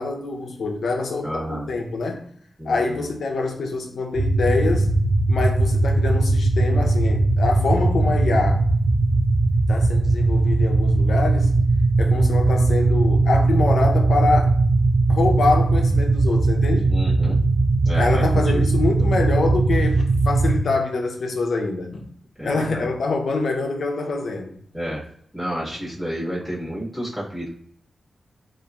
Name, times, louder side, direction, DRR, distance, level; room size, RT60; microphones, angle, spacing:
voice 1, 0.0-2.3 2.6-4.9 5.3-8.6 9.7-11.5 12.0-14.5 15.1-17.0 17.9-22.0 22.4-24.5, left 3 dB, 70° left, 0.4 m, -25 dB
voice 2, 1.2-1.7 2.6-3.0 16.9-17.4 17.8-18.7 22.4-22.9 24.7-25.0 25.3-27.5, equal, 10° right, 1.3 m, -30 dB
sound 1, 4.1-20.6, right 2 dB, 80° right, 0.5 m, -19 dB
2.9 x 2.4 x 2.2 m
wide cardioid pair, 120°, 0 cm